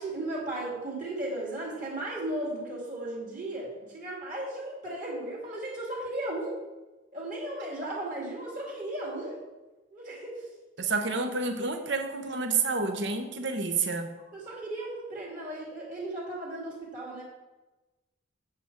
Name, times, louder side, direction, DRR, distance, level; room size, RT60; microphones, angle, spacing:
voice 1, 0.0-6.6 7.1-9.4 9.9-10.5 14.3-17.2, right 1 dB, 40° right, -4 dB, 2.3 m, -35 dB
voice 2, 10.8-14.1, right 4 dB, 65° right, 6 dB, 1.0 m, -29 dB
8.0 x 7.3 x 4.6 m, 1.1 s
head